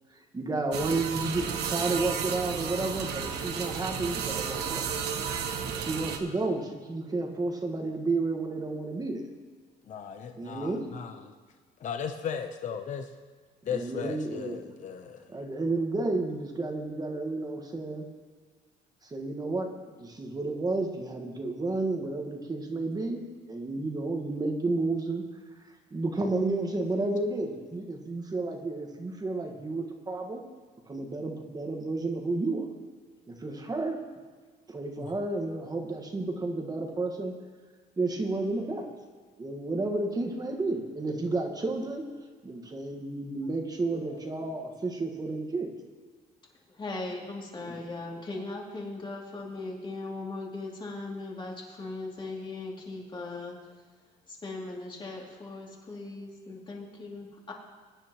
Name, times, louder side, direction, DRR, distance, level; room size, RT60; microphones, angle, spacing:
voice 1, 0.3-4.9 5.7-9.3 10.3-10.9 13.7-14.6 15.3-18.1 19.0-19.7 20.0-25.2 25.9-30.4 30.9-32.7 33.3-34.0 34.7-37.3 38.0-38.9 39.4-42.0 42.4-45.7 47.6-47.9, right 2 dB, 25° right, 3 dB, 1.6 m, -31 dB
sound 1, 0.7-6.2, right 7 dB, 80° right, 1.1 m, -33 dB
voice 2, 9.9-11.2 11.8-13.1 13.6-15.3 35.0-35.1 43.9-44.3, left 7 dB, 45° left, 6 dB, 0.8 m, -37 dB
voice 3, 46.7-53.6 54.3-57.5, left 2 dB, 30° left, -2 dB, 2.8 m, -38 dB
22.0 x 9.9 x 3.1 m, 1.5 s
cardioid pair, 110°, 17 cm